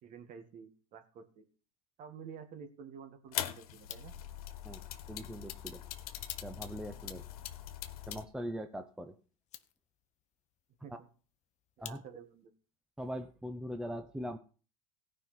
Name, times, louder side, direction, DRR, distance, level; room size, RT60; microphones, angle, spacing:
voice 1, 0.0-1.4 2.0-4.1 10.8-11.1 11.8-12.5, right 7 dB, 45° right, 8 dB, 2.0 m, -50 dB
sound 1, 3.3-8.2, left 12 dB, 80° left, 1.4 m, -42 dB
sound 2, 3.7-12.5, left 12 dB, 40° left, 1.0 m, -55 dB
voice 2, 5.1-5.8 6.4-7.2 8.1-9.1 10.9-11.0 11.8-12.0 13.0-14.4, equal, 5° right, 8 dB, 0.7 m, -41 dB
16.5 x 5.5 x 6.0 m, 0.38 s
supercardioid pair, 115°, 19 cm